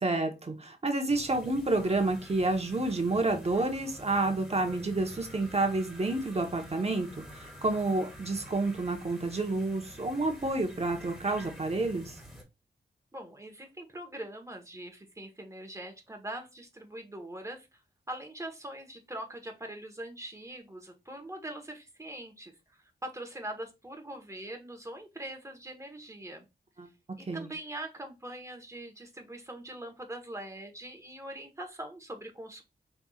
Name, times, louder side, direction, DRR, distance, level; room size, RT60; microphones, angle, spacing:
voice 1, 0.0-12.2 26.8-26.9 27.2-27.5, right 2 dB, 35° right, 4 dB, 1.1 m, -29 dB
sound 1, 1.1-12.4, equal, ahead, 2.3 m, -48 dB
voice 2, 13.1-17.8 18.1-22.5 23.0-26.5 27.2-32.6, right 1 dB, 15° right, 4 dB, 1.3 m, -42 dB
5.6 x 3.5 x 2.4 m, 0.25 s
wide cardioid pair, 75°, 18 cm